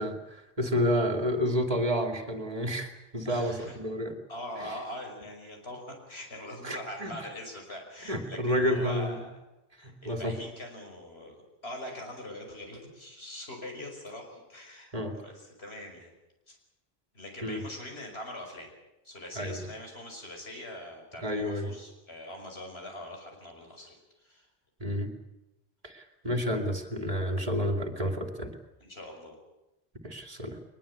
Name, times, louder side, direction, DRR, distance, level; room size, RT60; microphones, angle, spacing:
voice 1, 0.0-4.2 6.6-7.1 8.0-9.2 9.8-10.4 14.9-15.2 17.4-17.6 19.4-19.6 21.2-21.7 24.8-25.1 25.8-28.5 30.0-30.6, equal, 35° right, 5 dB, 2.7 m, -30 dB
voice 2, 3.3-3.8 4.3-9.4 9.8-16.1 16.5-16.6 17.1-18.7 19.0-24.5 28.8-29.4, left 1 dB, 80° left, 2 dB, 6.0 m, -43 dB
22.0 x 21.0 x 8.5 m, 0.96 s
omnidirectional pair, 1.0 m